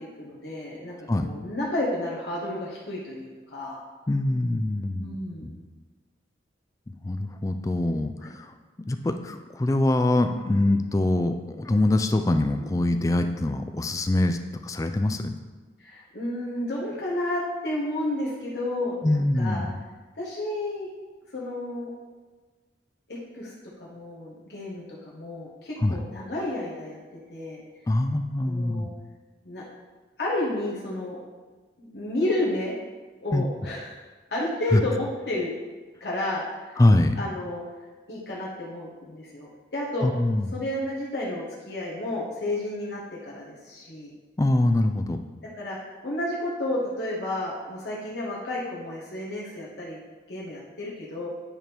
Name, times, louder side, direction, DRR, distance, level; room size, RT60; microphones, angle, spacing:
voice 1, 0.2-3.8 5.0-5.5 8.2-8.3 15.8-19.6 20.2-20.9 21.3-21.9 23.1-23.5 23.8-27.0 27.3-27.6 28.4-28.9 29.4-29.6 30.2-31.2 31.8-32.7 33.2-34.0 34.3-35.5 36.0-36.8 37.2-37.6 38.1-40.1 40.5-44.1 45.6-50.0 50.3-51.3, left 1 dB, 70° left, -5 dB, 1.2 m, -31 dB
voice 2, 4.1-5.2 5.4-5.6 7.0-8.5 8.9-15.4 19.0-19.7 25.8-26.0 27.9-28.9 33.3-33.4 34.7-34.8 36.8-37.2 40.0-40.5 44.4-45.2, left 1 dB, 20° left, 7 dB, 0.3 m, -24 dB
8.9 x 3.5 x 4.5 m, 1.3 s
head